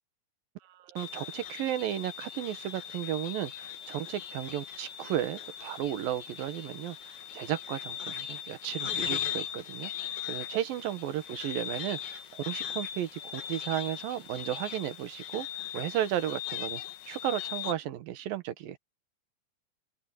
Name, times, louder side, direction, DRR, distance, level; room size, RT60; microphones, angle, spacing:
voice 1, 0.6-16.8 17.1-18.8, right 12 dB, 80° right, 3.0 m, -34 dB
sound 1, 1.0-17.7, left 10 dB, 85° left, 3.1 m, -39 dB
open air
omnidirectional pair, 4.1 m